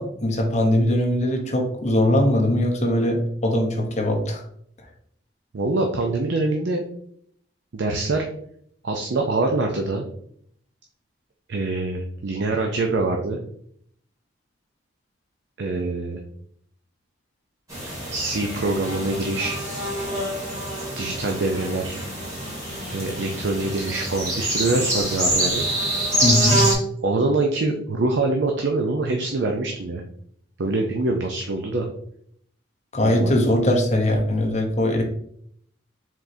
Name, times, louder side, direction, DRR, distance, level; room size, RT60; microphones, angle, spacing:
voice 1, 0.0-4.4 26.2-26.6 32.9-35.0, left 1 dB, 35° left, 2 dB, 0.8 m, -21 dB
voice 2, 5.5-6.8 7.7-8.2 8.8-10.1 11.5-13.4 15.6-16.2 18.1-19.6 21.0-22.0 22.9-25.7 27.0-30.0 30.6-31.9 33.0-33.4, right 2 dB, 65° right, 2 dB, 0.5 m, -24 dB
sound 1, 17.7-26.7, right 1 dB, 20° right, 1.9 m, -26 dB
4.8 x 3.7 x 2.7 m, 0.66 s
head